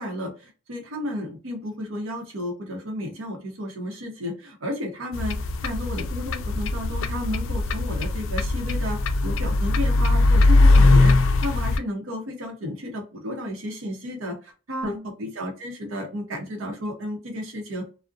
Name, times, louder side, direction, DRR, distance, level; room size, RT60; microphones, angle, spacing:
voice 1, 0.0-5.4 5.6-17.9, left 1 dB, 75° right, 1 dB, 0.7 m, -32 dB
sound 1, 5.1-11.8, left 2 dB, 70° left, 0.3 m, -20 dB
2.4 x 2.0 x 2.5 m, 0.34 s
head